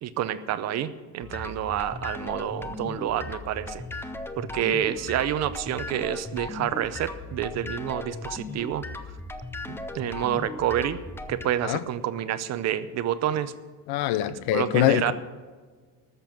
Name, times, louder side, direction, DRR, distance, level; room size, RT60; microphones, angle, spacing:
voice 1, 0.0-4.1 4.4-8.9 9.7-11.0 11.3-13.5 14.3-15.1, right 11 dB, 40° right, 0.6 m, -28 dB
sound 1, 1.2-11.5, left 2 dB, 5° left, 0.4 m, -37 dB
voice 2, 13.9-15.1, left 13 dB, 65° left, 0.8 m, -24 dB
13.5 x 6.8 x 8.8 m
cardioid pair, 170°, 41 cm